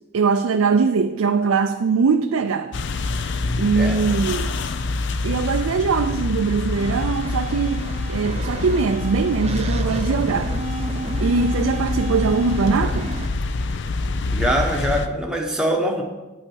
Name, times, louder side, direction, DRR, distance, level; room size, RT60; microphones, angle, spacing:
voice 1, 0.1-2.8 3.6-4.5 5.2-10.6 11.2-13.1, right 5 dB, 80° right, 0.4 m, -21 dB
sound 1, 2.7-15.1, left 3 dB, 60° left, 0.5 m, -26 dB
sound 2, 6.8-13.3, right 2 dB, 30° right, 0.6 m, -32 dB
voice 2, 14.3-16.0, equal, 5° right, 1.1 m, -23 dB
8.9 x 8.7 x 4.6 m
head